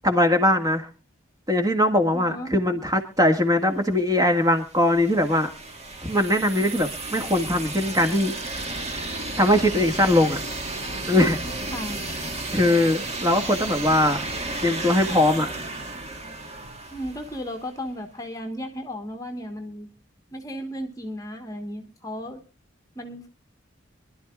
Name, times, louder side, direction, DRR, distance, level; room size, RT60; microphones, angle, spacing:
voice 1, 0.0-0.9 1.5-5.5 6.0-8.4 9.4-10.4 11.1-11.4 12.5-14.3 14.6-15.5, left 1 dB, 20° right, 6 dB, 1.9 m, -21 dB
voice 2, 2.1-2.6 11.7-12.0 16.9-19.9 20.3-22.4 22.9-23.3, equal, 20° left, 4 dB, 1.3 m, -35 dB
sound 1, 4.0-17.8, right 2 dB, 35° right, 1.8 m, -33 dB
25.0 x 12.0 x 2.4 m, 0.34 s
head